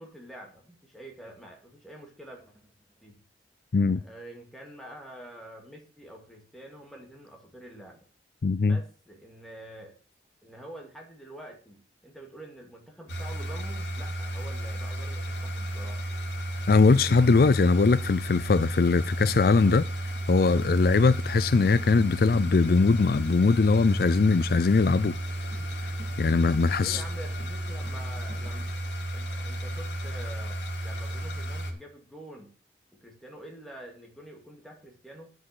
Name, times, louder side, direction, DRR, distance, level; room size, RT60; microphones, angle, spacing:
voice 1, 0.0-3.2 4.0-8.0 8.6-10.0 10.4-16.0 26.8-28.7 29.1-32.5 32.9-35.3, right 1 dB, ahead, 2.3 m, -46 dB
voice 2, 8.4-8.8 16.7-19.9 20.3-25.1 25.8-25.9 26.2-27.0, left 4 dB, 55° left, 0.4 m, -21 dB
sound 1, 13.1-31.7, right 1 dB, 90° left, 2.3 m, -33 dB
sound 2, 15.0-28.7, equal, 40° left, 3.4 m, -52 dB
9.7 x 6.3 x 6.7 m
head